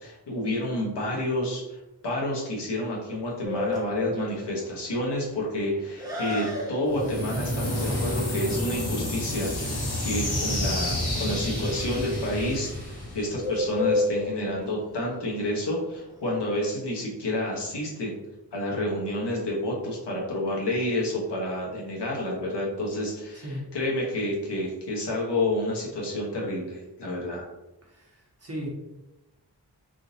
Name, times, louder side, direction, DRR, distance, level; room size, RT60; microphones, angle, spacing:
voice 1, 0.0-18.2 18.5-23.5 23.7-27.5, left 1 dB, 85° left, -3 dB, 1.0 m, -29 dB
Bird, 3.4-16.4, left 2 dB, 10° right, 0.9 m, -33 dB
sound 1, 6.8-13.7, left 1 dB, 65° left, 1.1 m, -29 dB
voice 2, 23.3-23.6 27.8-28.7, equal, 35° right, -3 dB, 1.1 m, -37 dB
3.6 x 2.6 x 2.7 m, 0.98 s
wide cardioid pair, 65°, 40 cm